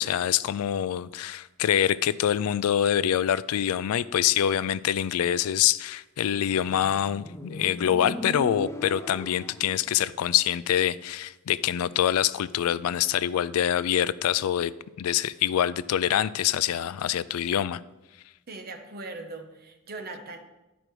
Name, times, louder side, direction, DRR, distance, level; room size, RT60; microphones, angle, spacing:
voice 1, 0.0-14.7 15.0-17.8, left 10 dB, 85° left, 0.3 m, -25 dB
Motorcycle, 6.6-9.9, equal, 10° left, 0.5 m, -38 dB
voice 2, 18.5-20.4, right 3 dB, 45° right, 1.0 m, -40 dB
11.0 x 5.1 x 4.7 m
head